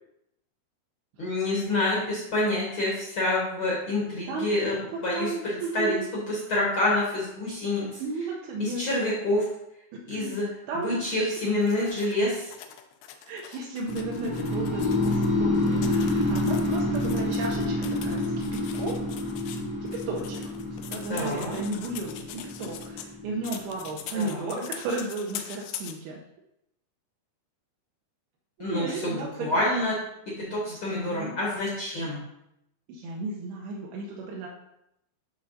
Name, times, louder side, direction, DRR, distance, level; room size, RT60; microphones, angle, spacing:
voice 1, 1.2-8.0 8.6-9.4 10.1-10.5 10.7-12.5 21.1-21.6 24.1-24.6 28.6-30.0 30.4-32.2, left 1 dB, 65° left, -6 dB, 1.2 m, -27 dB
voice 2, 5.1-6.1 8.0-8.8 9.9-10.3 10.7-11.3 13.3-19.0 19.9-20.4 20.8-26.2 28.7-29.6 30.7-31.3 32.9-34.5, right 3 dB, 80° right, -2 dB, 2.6 m, -34 dB
sound 1, 11.6-15.3 15.6-23.1 23.4-25.9, left 9 dB, 90° left, 2.6 m, -43 dB
sound 2, 13.9-23.8, left 1 dB, 5° left, 0.6 m, -28 dB
11.0 x 3.8 x 2.7 m, 0.80 s
omnidirectional pair, 4.6 m